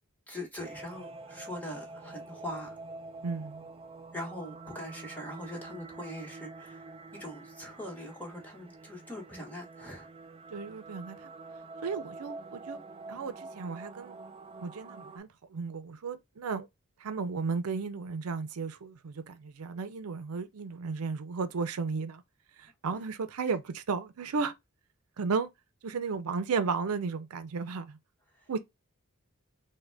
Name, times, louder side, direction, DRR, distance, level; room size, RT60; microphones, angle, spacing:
voice 1, 0.3-2.8 4.1-6.9 7.1-10.1 28.4-28.5, left 1 dB, 5° left, 1.1 m, -42 dB
sound 1, 0.6-15.2, right 3 dB, 25° right, 0.3 m, -46 dB
voice 2, 3.2-3.7 10.5-11.3 11.8-12.8 13.1-14.2 14.6-16.7 17.0-22.2 22.6-24.5 25.2-25.5 25.8-28.0 28.5-28.6, right 5 dB, 80° right, 0.5 m, -34 dB
3.6 x 2.2 x 3.3 m
head